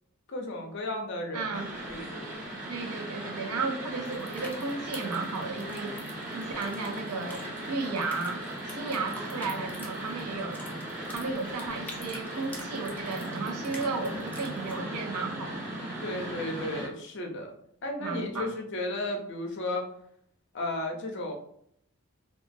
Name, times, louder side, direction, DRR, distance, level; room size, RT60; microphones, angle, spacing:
voice 1, 0.3-1.6 1.9-2.3 16.0-17.5 17.8-19.9 20.5-21.3, left 1 dB, 55° left, 2 dB, 0.5 m, -34 dB
voice 2, 1.3-1.7 2.7-6.0 6.3-10.6 11.1-15.7 18.0-18.5, right 4 dB, 90° right, 5 dB, 0.5 m, -34 dB
sound 1, 1.5-16.9, right 1 dB, 40° right, 0.9 m, -38 dB
sound 2, 4.0-14.8, left 1 dB, 5° left, 0.3 m, -48 dB
2.9 x 2.3 x 2.5 m, 0.69 s
head